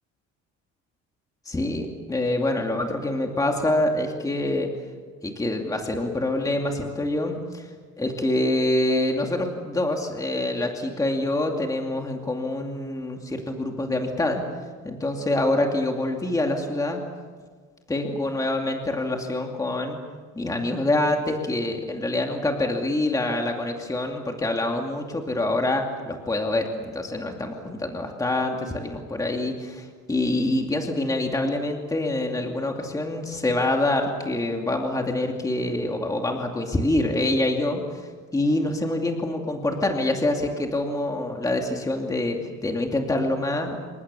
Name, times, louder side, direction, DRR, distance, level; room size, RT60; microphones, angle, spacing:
voice 1, 1.5-4.7 5.2-7.7 8.0-14.4 14.8-17.0 17.9-20.0 20.3-42.4 42.6-43.8, left 1 dB, 10° left, 2 dB, 2.5 m, -26 dB
28.0 x 25.5 x 7.0 m, 1.6 s
cardioid pair, 150°, 29 cm